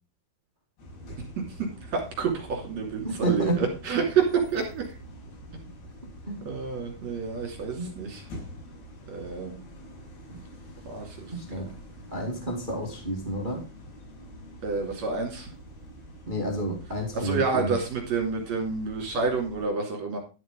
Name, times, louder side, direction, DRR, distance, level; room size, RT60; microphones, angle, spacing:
sound 1, 0.8-19.7, left 1 dB, 90° left, 8.3 m, -46 dB
voice 1, 1.8-4.9 6.4-8.2 9.1-9.6 10.9-11.6 14.6-15.5 17.1-20.2, right 5 dB, 45° right, 1 dB, 3.7 m, -29 dB
voice 2, 3.0-3.7 6.3-6.4 7.7-7.9 10.3-10.4 11.3-11.7 12.1-13.6 16.3-17.7, right 1 dB, 20° right, 1 dB, 1.5 m, -30 dB
12.0 x 6.4 x 5.3 m, 0.33 s
omnidirectional pair, 4.6 m